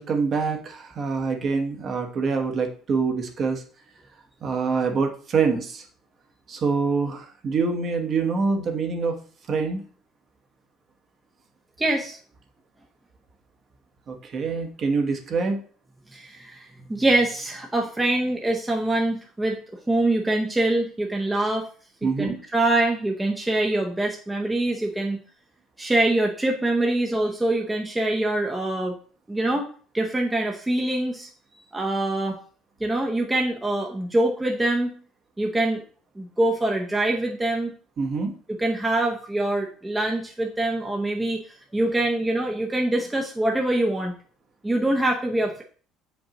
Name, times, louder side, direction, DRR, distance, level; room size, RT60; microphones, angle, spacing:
voice 1, 0.0-3.6 4.4-5.8 6.5-9.2 9.5-9.8 14.1-15.6 22.0-22.4 38.0-38.3, right 4 dB, 35° right, 4 dB, 1.0 m, -25 dB
voice 2, 11.8-12.2 16.1-19.6 19.9-21.7 22.0-25.2 25.8-29.0 29.3-29.6 29.9-31.3 31.6-32.4 32.8-34.9 35.4-35.8 36.2-37.7 38.5-41.4 41.7-44.1 44.6-45.6, right 1 dB, 10° right, 0 dB, 0.7 m, -24 dB
7.6 x 5.2 x 2.9 m, 0.43 s
cardioid pair, 155°, 0 cm